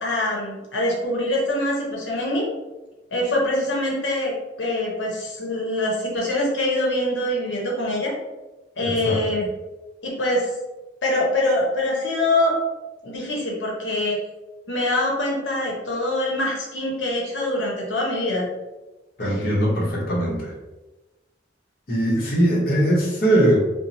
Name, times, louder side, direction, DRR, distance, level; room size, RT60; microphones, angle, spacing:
voice 1, 0.0-2.5 3.1-8.1 8.8-9.5 10.0-10.5 11.0-12.6 13.0-14.2 14.7-18.5 19.2-19.5, left 1 dB, 90° left, -3 dB, 0.8 m, -24 dB
voice 2, 8.8-9.2 19.2-20.5 21.9-23.6, right 1 dB, 55° left, -4 dB, 0.9 m, -20 dB
2.8 x 2.0 x 3.9 m, 1.1 s
head